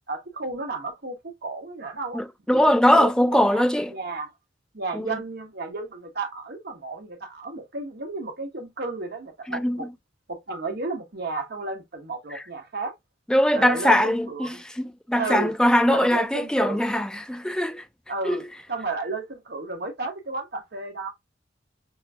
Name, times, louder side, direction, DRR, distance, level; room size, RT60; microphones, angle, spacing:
voice 1, 0.1-2.2 2.7-4.3 4.7-9.9 10.3-12.9 13.5-14.6 15.1-15.5 15.9-16.9 18.1-18.4 18.7-21.1, right 3 dB, 60° right, 1.1 m, -33 dB
voice 2, 2.1-3.9 4.9-5.1 9.5-9.9 12.3-12.4 13.3-17.8 18.2-18.4, left 1 dB, 5° left, 0.3 m, -21 dB
5.9 x 2.6 x 2.2 m
head